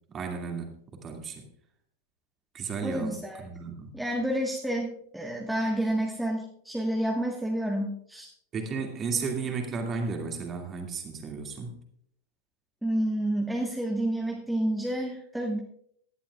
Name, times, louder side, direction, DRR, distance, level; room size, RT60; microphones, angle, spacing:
voice 1, 0.1-1.5 2.5-3.9 8.5-11.8, right 5 dB, 25° right, 3 dB, 2.3 m, -34 dB
voice 2, 2.8-3.4 3.9-8.3 12.8-15.6, right 1 dB, 5° right, -1 dB, 1.4 m, -29 dB
17.5 x 11.5 x 2.4 m, 0.66 s
figure-of-eight pair, 90°, 0 cm